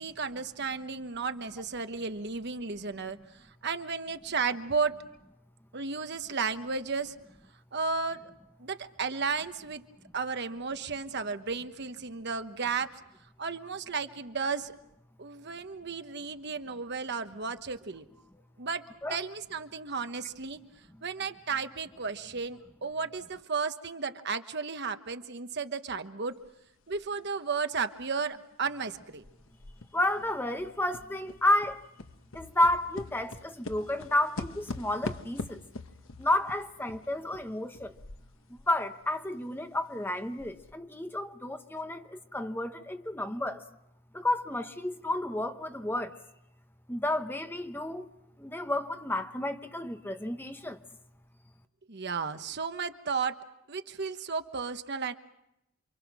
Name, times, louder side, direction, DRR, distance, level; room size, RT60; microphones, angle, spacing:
voice 1, 0.0-3.2 3.6-4.9 5.7-7.1 7.7-8.3 8.6-9.8 10.1-12.9 13.4-14.7 15.2-18.0 18.6-18.8 19.1-20.6 21.0-26.4 26.9-29.2 51.9-53.3 53.7-55.1, right 5 dB, 55° right, 1.2 m, -33 dB
sound 1, 26.4-26.5 27.0-28.9 29.2-38.8 39.0-39.1 39.6-39.7 40.2-40.7, left 2 dB, 70° left, 1.2 m, -43 dB
voice 2, 29.9-31.8 32.3-35.6 36.2-37.9 38.7-43.6 44.1-46.1 46.9-48.1 48.4-50.8, left 1 dB, 10° left, 1.0 m, -31 dB
28.0 x 25.0 x 6.2 m
head